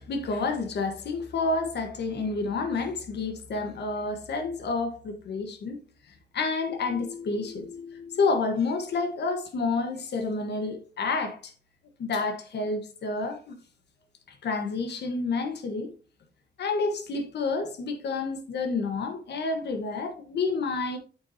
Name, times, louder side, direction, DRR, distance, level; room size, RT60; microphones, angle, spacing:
voice 1, 0.0-5.8 6.1-11.5 12.0-13.6 14.3-15.9 16.6-21.0, left 3 dB, 85° left, 1.2 m, -29 dB
8.2 x 6.0 x 2.7 m
cardioid pair, 70°, 17 cm